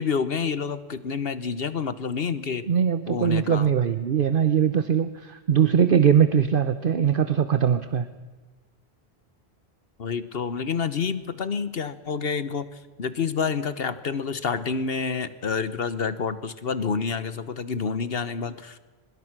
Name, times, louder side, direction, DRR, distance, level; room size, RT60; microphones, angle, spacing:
voice 1, 0.0-2.7 3.1-3.7 10.0-12.7 13.0-18.8, left 5 dB, 70° left, 14 dB, 1.3 m, -28 dB
voice 2, 2.7-8.1, right 8 dB, 60° right, 12 dB, 1.0 m, -21 dB
24.0 x 21.5 x 6.1 m, 1.4 s
omnidirectional pair, 1.1 m